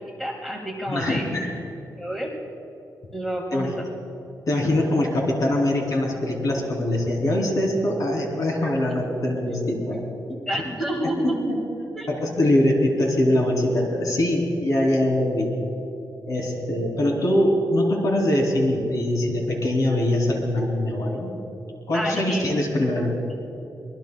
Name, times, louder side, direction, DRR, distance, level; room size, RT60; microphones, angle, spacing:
voice 1, 0.2-1.3 2.0-2.3 3.1-3.7 9.5-9.6 10.5-11.4 11.9-12.1 21.9-22.4, right 1 dB, 5° left, -1 dB, 1.8 m, -29 dB
voice 2, 0.9-1.5 3.5-3.8 4.5-10.0 10.5-10.6 11.5-11.6 12.1-15.5 16.3-21.3 21.9-23.1, left 1 dB, 55° left, 0 dB, 3.0 m, -23 dB
24.5 x 20.5 x 2.3 m, 2.8 s
wide cardioid pair, 155°, 7 cm